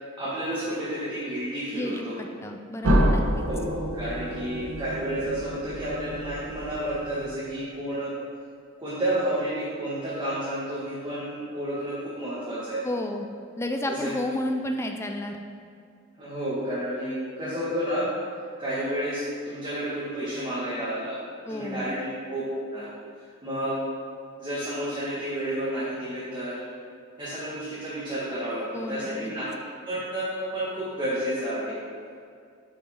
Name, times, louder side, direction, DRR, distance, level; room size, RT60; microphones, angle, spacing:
voice 1, 0.2-2.2 3.5-8.1 8.8-12.8 13.9-14.1 16.2-18.1 18.6-22.4 22.7-22.9 23.4-23.8 24.4-26.6 27.2-29.5 29.8-31.8, right 1 dB, 20° right, -10 dB, 1.6 m, -31 dB
voice 2, 1.7-3.5 12.8-13.3 13.6-15.4 21.5-21.9 28.7-29.3, left 1 dB, 15° left, 3 dB, 0.4 m, -31 dB
sound 1, 2.8-7.6, equal, 80° right, 1.1 m, -28 dB
8.3 x 5.6 x 4.4 m, 2.3 s
head